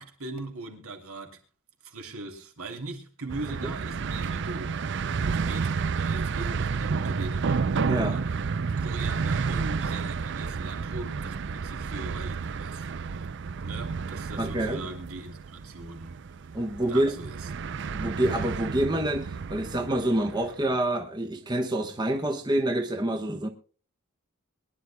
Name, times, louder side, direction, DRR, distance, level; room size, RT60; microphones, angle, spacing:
voice 1, 0.0-1.4 1.8-4.7 5.1-8.3 8.8-13.3 13.6-16.2 16.9-17.5, right 2 dB, 75° right, 3.1 m, -40 dB
sound 1, 3.3-20.5, right 5 dB, 50° right, 0.5 m, -31 dB
voice 2, 7.9-8.2 14.4-14.9 16.5-17.2 17.9-23.5, right 1 dB, 20° right, 1.1 m, -27 dB
23.5 x 11.0 x 2.3 m
head